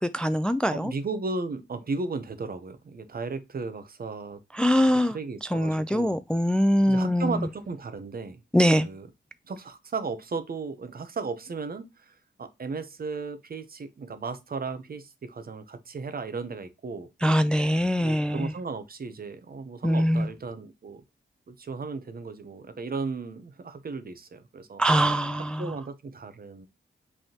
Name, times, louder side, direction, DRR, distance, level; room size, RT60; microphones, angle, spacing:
voice 1, 0.0-0.9 4.5-7.5 8.5-8.9 17.2-18.5 19.8-20.3 24.8-25.8, equal, 5° left, 0.3 m, -23 dB
voice 2, 0.7-4.4 5.1-6.2 6.9-8.4 8.7-9.1 9.5-12.1 12.4-17.1 18.0-21.0 21.5-24.8 25.6-26.7, right 4 dB, 50° right, 0.8 m, -35 dB
5.3 x 3.5 x 2.8 m
cardioid pair, 75°, 20 cm